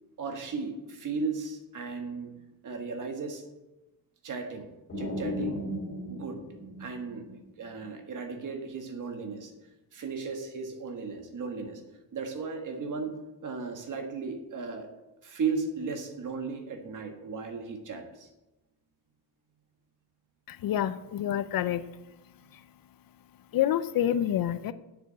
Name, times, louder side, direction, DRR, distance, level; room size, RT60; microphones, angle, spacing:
voice 1, 0.2-2.3 2.6-3.4 4.2-4.7 5.0-5.6 6.1-6.4 6.8-7.2 7.6-9.5 9.9-11.8 12.1-13.1 13.4-14.9 15.2-18.3, right 4 dB, 45° right, 5 dB, 1.6 m, -35 dB
sound 1, 4.9-7.7, left 1 dB, 30° left, 3.4 m, -36 dB
voice 2, 20.5-21.8 22.5-22.6 23.5-24.7, left 11 dB, 55° left, 14 dB, 0.5 m, -28 dB
7.6 x 7.0 x 8.1 m, 1.0 s
cardioid pair, 160°, 41 cm